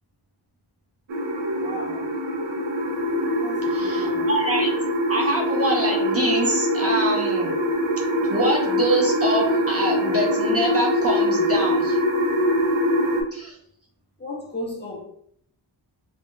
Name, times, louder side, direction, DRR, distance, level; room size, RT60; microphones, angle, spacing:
sound 1, 1.1-13.2, equal, 75° right, 0.7 m, -23 dB
voice 1, 1.6-2.1 3.4-4.3 14.2-15.1, left 1 dB, 20° left, 0.5 m, -35 dB
voice 2, 3.7-4.7 5.1-7.5 8.2-12.0 13.3-13.6, right 1 dB, 30° right, 0.6 m, -25 dB
2.5 x 2.2 x 3.6 m
wide cardioid pair, 150°, 48 cm